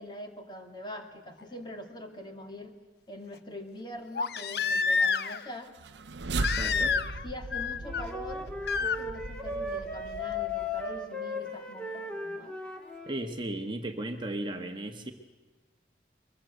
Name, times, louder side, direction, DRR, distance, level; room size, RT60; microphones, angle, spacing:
voice 1, 0.0-2.7 3.1-5.7 6.6-12.6, left 1 dB, 25° left, 4 dB, 2.2 m, -43 dB
Crying sobbing, 1.4-1.5 4.1-5.5 6.4-7.3 7.5-8.0 8.7-9.0 10.6-10.7, left 5 dB, 60° left, 0.7 m, -28 dB
sound 1, 5.7-11.0, right 3 dB, 80° right, 0.7 m, -38 dB
voice 2, 6.4-6.9 13.1-15.1, right 1 dB, 25° right, 5 dB, 1.3 m, -35 dB
Wind instrument woodwind instrument, 7.8-13.2, left 3 dB, 5° left, 2.3 m, -36 dB
23.0 x 20.5 x 7.9 m, 1.3 s
head